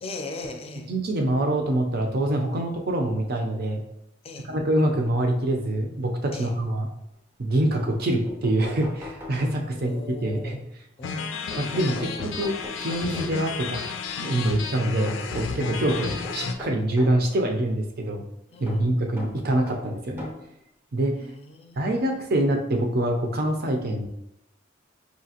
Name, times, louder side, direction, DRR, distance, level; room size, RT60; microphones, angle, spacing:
voice 1, 0.0-0.9 4.2-4.5 6.3-6.5 9.6-10.6 11.0-11.3 14.2-14.7 15.5-15.8 18.5-18.9 21.2-22.3, left 2 dB, 30° left, 4 dB, 0.5 m, -39 dB
voice 2, 0.9-3.8 4.4-6.9 7.4-10.6 11.6-13.8 14.2-18.2 18.6-20.3 20.9-21.1 21.8-24.1, right 1 dB, 55° right, 3 dB, 0.6 m, -25 dB
sound 1, 7.9-8.0 8.3-10.0 11.5-13.6 15.1-17.3 18.7-20.5 21.4-21.5 22.8-22.9 23.2-23.3, left 2 dB, 10° right, 0.6 m, -41 dB
sound 2, 11.0-16.5, left 5 dB, 85° left, 0.4 m, -32 dB
4.9 x 2.8 x 2.8 m, 0.82 s
head